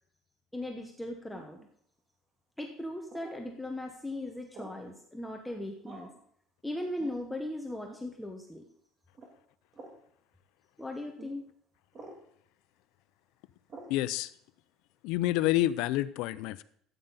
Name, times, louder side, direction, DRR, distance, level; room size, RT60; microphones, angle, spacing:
voice 1, 0.5-1.6 2.6-6.1 6.6-8.7 10.8-11.4, left 1 dB, 5° left, 2 dB, 0.9 m, -38 dB
sound 1, 1.3-1.7 3.1-3.4 4.5-4.9 5.8-6.2 7.0-7.2 7.8-8.1 9.1-9.3 9.7-10.0 11.2-11.3 11.9-12.2 13.7-14.0, right 2 dB, 30° right, 2.0 m, -48 dB
voice 2, 13.9-14.3 15.0-16.6, left 15 dB, 75° left, 15 dB, 0.5 m, -28 dB
13.0 x 8.9 x 3.9 m, 0.66 s
cardioid pair, 145°, 0 cm